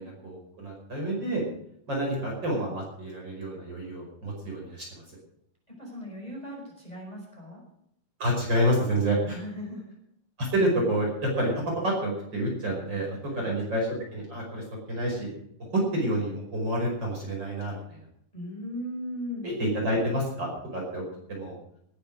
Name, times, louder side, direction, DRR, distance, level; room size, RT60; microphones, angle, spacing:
voice 1, 0.0-1.4 1.9-5.0 8.2-9.4 10.4-15.3 15.6-18.0 19.4-21.0 21.3-21.5, right 1 dB, 30° right, -2 dB, 5.8 m, -28 dB
voice 2, 5.8-7.6 9.3-9.9 13.2-13.5 18.3-19.5, equal, 10° left, -2 dB, 5.4 m, -38 dB
19.5 x 10.0 x 6.4 m, 0.72 s
omnidirectional pair, 3.8 m